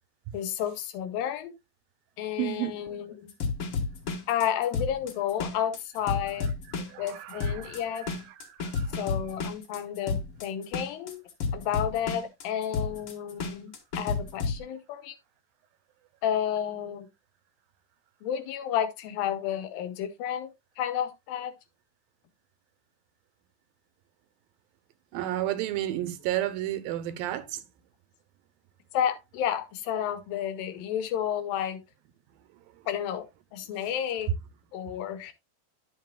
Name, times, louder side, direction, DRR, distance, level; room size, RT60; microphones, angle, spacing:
voice 1, 0.3-1.5 2.2-3.3 4.3-6.5 7.0-8.1 8.9-11.2 11.5-15.2 16.2-17.1 18.2-21.5 28.9-31.8 32.9-34.3 34.7-35.3, left 10 dB, 80° left, 2.6 m, -31 dB
voice 2, 2.4-2.7 6.9-7.8 8.6-9.0 25.1-27.6, right 14 dB, 80° right, 2.5 m, -31 dB
sound 1, 3.3-14.6, left 4 dB, 55° left, 1.6 m, -32 dB
10.5 x 7.4 x 2.2 m
omnidirectional pair, 4.2 m